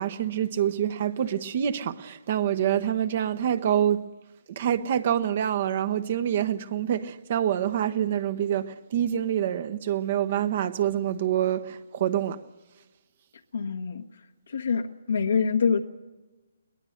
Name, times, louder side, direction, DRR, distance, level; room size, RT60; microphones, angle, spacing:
voice 1, 0.0-4.0 4.6-12.4, right 10 dB, 45° right, 1.0 m, -26 dB
voice 2, 13.5-14.0 14.5-15.8, left 6 dB, 75° left, 1.3 m, -25 dB
22.0 x 19.0 x 6.5 m
hypercardioid pair, 145°, 0 cm